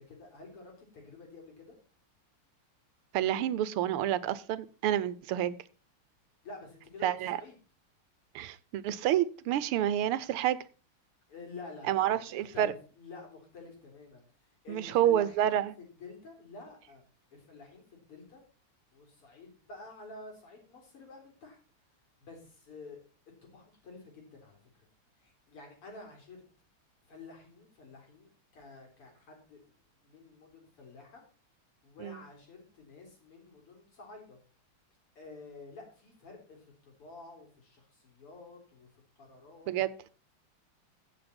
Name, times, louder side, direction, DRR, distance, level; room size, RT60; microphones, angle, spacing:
voice 1, 0.0-1.8 6.4-7.6 11.3-14.2 14.6-17.0 17.3-18.4 18.9-21.6 22.2-23.0 23.4-24.6 25.2-26.4 27.1-29.7 30.0-31.2 31.8-34.4 35.2-38.9 39.2-39.7, left 3 dB, 80° left, 4.9 m, -50 dB
voice 2, 3.1-5.6 7.0-7.4 8.3-10.6 11.9-12.7 14.7-15.7 32.0-32.2 39.7-39.9, right 11 dB, 90° right, 1.6 m, -29 dB
15.5 x 7.3 x 4.4 m
omnidirectional pair, 2.4 m